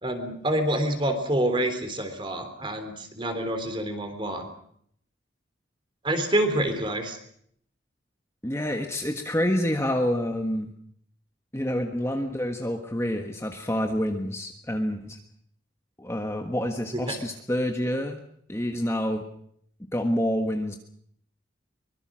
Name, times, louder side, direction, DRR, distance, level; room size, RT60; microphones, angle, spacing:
voice 1, 0.0-4.5 6.0-7.2 16.9-17.2, right 1 dB, 25° right, 7 dB, 3.5 m, -27 dB
voice 2, 8.4-10.7 11.5-15.2 16.0-18.2 18.5-19.2 19.9-20.8, equal, 15° left, 4 dB, 1.4 m, -27 dB
24.0 x 22.5 x 6.3 m, 0.66 s
head